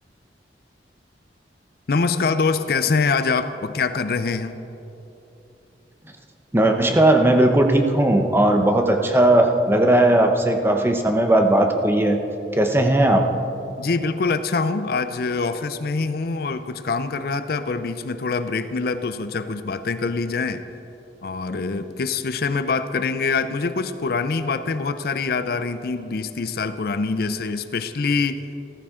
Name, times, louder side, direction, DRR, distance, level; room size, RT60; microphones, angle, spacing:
voice 1, 1.9-4.6 13.8-20.6 21.2-28.4, left 4 dB, 60° left, 11 dB, 0.5 m, -24 dB
voice 2, 6.5-12.2 12.5-13.3, right 1 dB, 15° right, 4 dB, 0.8 m, -17 dB
14.5 x 14.0 x 3.7 m, 2.9 s
head